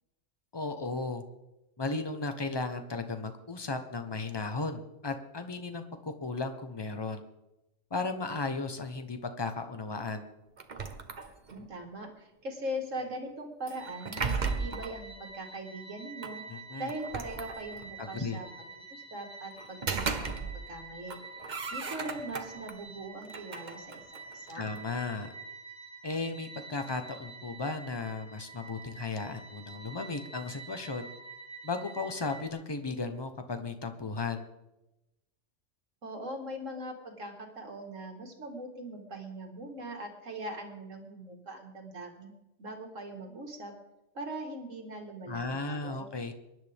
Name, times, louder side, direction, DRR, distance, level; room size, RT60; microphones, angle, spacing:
voice 1, 0.5-1.2 1.8-7.2 7.9-10.3 16.5-16.9 18.0-18.4 24.5-25.3 26.0-31.1 31.6-34.5 45.3-46.3, left 3 dB, 20° left, 7 dB, 1.0 m, -35 dB
sound 1, 10.6-11.7 13.7-15.0 16.2-16.3 16.9-18.0 19.6-20.8 21.1-22.7 23.2-24.8, right 4 dB, 40° right, 1.0 m, -36 dB
voice 2, 11.5-16.4 16.8-18.5 18.9-21.2 21.7-24.0 24.3-24.7 36.0-42.3 42.6-43.7 44.1-46.1, right 1 dB, 75° right, 3 dB, 2.4 m, -41 dB
sound 2, 13.7-32.5, right 3 dB, 45° left, 2.1 m, -48 dB
23.0 x 11.0 x 3.6 m, 0.94 s
omnidirectional pair, 1.3 m